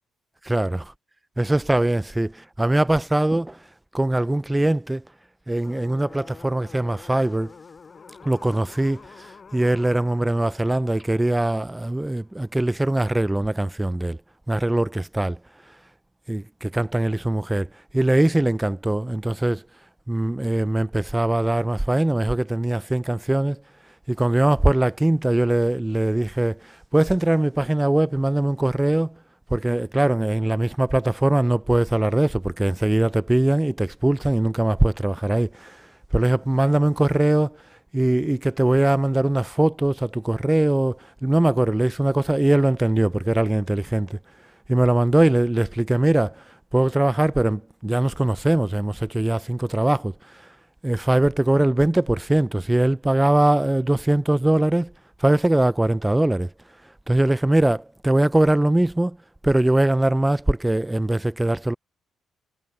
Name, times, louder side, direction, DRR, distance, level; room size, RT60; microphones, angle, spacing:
voice 1, 0.4-0.9 1.4-3.6 3.9-5.0 5.5-7.5 8.2-14.2 14.5-15.4 16.3-19.6 20.1-23.6 24.1-29.2 29.5-35.9 36.1-37.6 37.9-44.2 44.7-46.4 46.7-50.4 50.8-54.9 55.2-56.5 57.1-59.2 59.4-61.7, right 1 dB, 10° right, 0.5 m, -21 dB
sound 1, 5.6-12.6, left 5 dB, 40° left, 5.1 m, -48 dB
cardioid pair, 90°, 0 cm